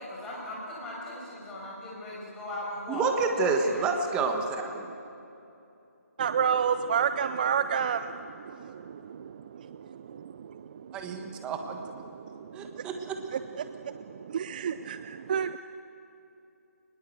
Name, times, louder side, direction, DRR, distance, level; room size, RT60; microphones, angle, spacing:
voice 1, 0.0-4.2, left 1 dB, 10° left, -5 dB, 5.7 m, -38 dB
voice 2, 2.9-4.9 10.9-11.8 12.5-13.2, right 4 dB, 10° right, 4 dB, 1.4 m, -29 dB
voice 3, 6.2-11.5 12.0-12.9 13.3-15.6, right 7 dB, 30° right, 12 dB, 0.5 m, -31 dB
23.5 x 20.5 x 8.0 m, 2.8 s
figure-of-eight pair, 160°, 8 cm